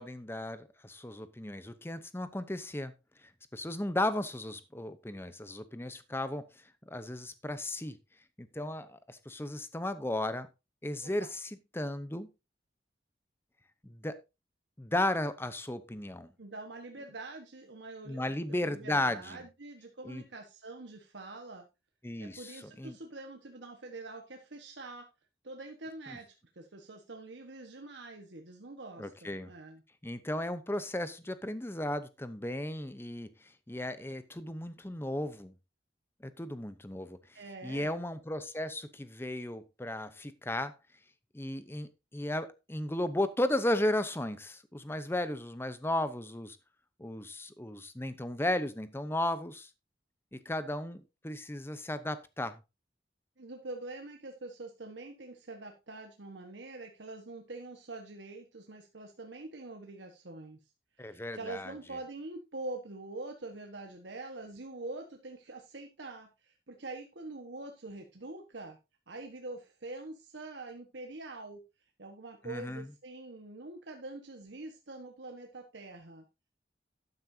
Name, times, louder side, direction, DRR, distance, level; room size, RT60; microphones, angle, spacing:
voice 1, 0.0-2.9 3.5-6.4 6.9-8.0 8.4-10.5 10.8-12.3 13.8-14.2 14.8-16.3 18.1-19.4 20.0-20.2 22.0-23.0 29.0-29.5 30.0-35.5 36.2-40.7 41.3-46.6 47.0-49.7 50.3-52.6 61.0-61.7 72.4-72.9, left 1 dB, 15° left, 0.8 m, -35 dB
voice 2, 16.4-21.6 22.2-25.0 25.4-29.8 37.3-37.9 53.4-60.6 61.0-68.8 69.1-71.6 72.0-76.2, right 2 dB, 80° right, 1.4 m, -45 dB
12.0 x 9.7 x 2.8 m
head